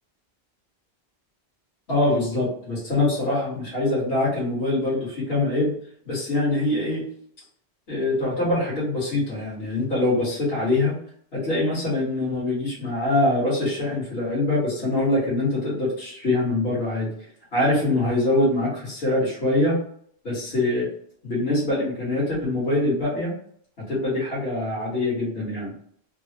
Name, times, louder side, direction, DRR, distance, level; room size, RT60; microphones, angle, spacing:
voice 1, 1.9-5.7 6.1-7.0 7.9-11.0 11.3-17.1 17.5-19.8 20.2-20.9 21.2-23.3 23.9-25.7, left 2 dB, 65° left, -7 dB, 1.7 m, -24 dB
3.8 x 2.0 x 2.8 m, 0.63 s
omnidirectional pair, 1.1 m